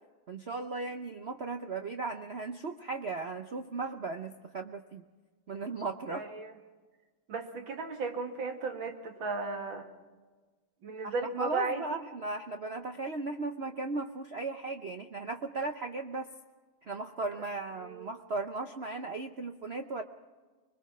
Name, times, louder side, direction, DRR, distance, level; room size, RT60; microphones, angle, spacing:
voice 1, 0.3-5.0 5.5-6.2 11.0-16.3 16.8-20.0, right 3 dB, 80° right, 6 dB, 0.5 m, -37 dB
voice 2, 6.1-6.5 7.3-9.9 10.8-12.0 17.5-18.1, right 3 dB, 65° right, 4 dB, 2.7 m, -35 dB
25.0 x 21.5 x 6.0 m, 1.4 s
omnidirectional pair, 2.3 m